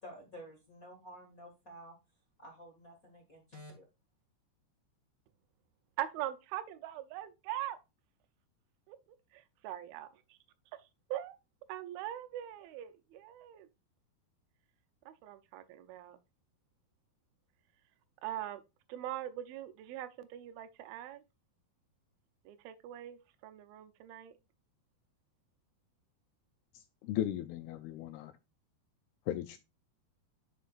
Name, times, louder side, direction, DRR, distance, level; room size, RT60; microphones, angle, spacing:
voice 1, 0.0-1.9 2.4-3.8, equal, 50° left, 1.0 m, -51 dB
voice 2, 6.0-7.8 8.9-9.0 9.3-10.1 10.8-11.4 11.7-13.7 15.1-16.2 18.2-18.6 18.9-21.2 22.5-24.4, right 12 dB, 75° right, 2.3 m, -42 dB
voice 3, 27.0-28.3 29.3-29.6, left 12 dB, 85° left, 2.2 m, -36 dB
9.8 x 5.6 x 2.5 m
omnidirectional pair, 4.9 m